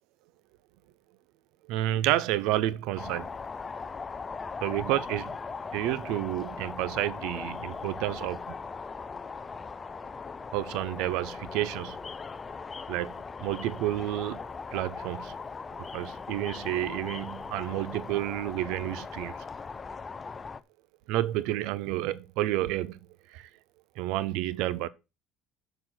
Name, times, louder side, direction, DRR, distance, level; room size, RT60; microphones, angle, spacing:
voice 1, 1.7-3.3 4.6-5.3 5.7-8.4 10.5-12.0 12.9-13.1 13.4-14.4 14.7-15.3 15.9-19.3 21.1-23.0 23.3-23.5 24.0-24.9, right 14 dB, 70° right, 0.6 m, -30 dB
sound 1, 3.0-20.6, left 4 dB, 15° left, 0.4 m, -39 dB
6.7 x 5.9 x 5.9 m
cardioid pair, 170°, 0 cm